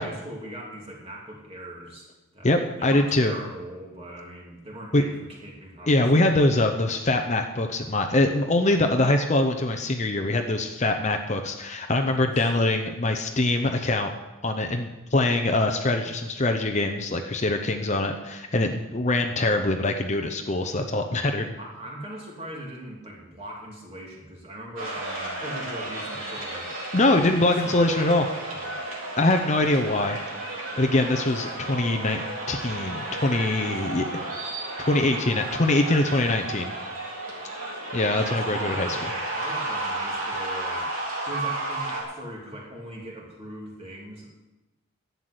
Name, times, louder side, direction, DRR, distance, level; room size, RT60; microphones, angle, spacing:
voice 1, 0.0-2.5 2.8-6.2 12.0-12.5 21.6-26.8 27.6-28.2 28.5-28.8 29.6-29.7 38.1-39.1 39.3-44.3, right 1 dB, 30° right, -2 dB, 2.7 m, -40 dB
voice 2, 2.4-3.3 4.9-5.0 5.9-14.1 14.4-21.5 26.9-28.3 29.2-30.2 30.8-34.1 34.8-36.7 37.9-39.0, left 2 dB, 30° left, 5 dB, 0.7 m, -23 dB
sound 1, 24.8-42.0, right 2 dB, 65° right, 3.8 m, -33 dB
11.5 x 8.2 x 7.9 m, 1.1 s
head